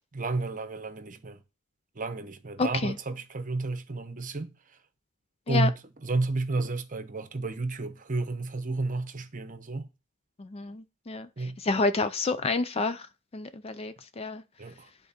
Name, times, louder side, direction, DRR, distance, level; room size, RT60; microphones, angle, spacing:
voice 1, 0.1-1.4 2.0-4.5 5.5-5.7 6.0-9.9 11.4-11.6 14.6-14.9, right 3 dB, 40° right, 0.9 m, -31 dB
voice 2, 2.6-3.0 5.5-5.7 10.4-13.1 13.3-14.4, left 3 dB, 25° left, 0.4 m, -29 dB
11.0 x 3.8 x 4.3 m
head